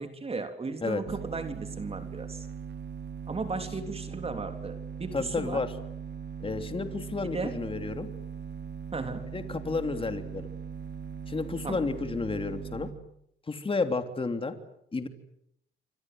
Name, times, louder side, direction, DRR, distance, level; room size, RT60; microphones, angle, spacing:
voice 1, 0.0-2.5 3.3-5.6 7.3-7.6 8.9-9.3 11.6-11.8, right 3 dB, 30° right, 7 dB, 3.3 m, -35 dB
sound 1, 1.1-12.9, right 6 dB, 60° right, 3.9 m, -40 dB
voice 2, 5.1-5.7 6.4-8.1 9.3-10.5 11.3-12.9 13.5-14.5 14.9-15.1, left 3 dB, 25° left, 8 dB, 3.1 m, -31 dB
29.0 x 25.0 x 7.8 m, 0.73 s
cardioid pair, 90°, 20 cm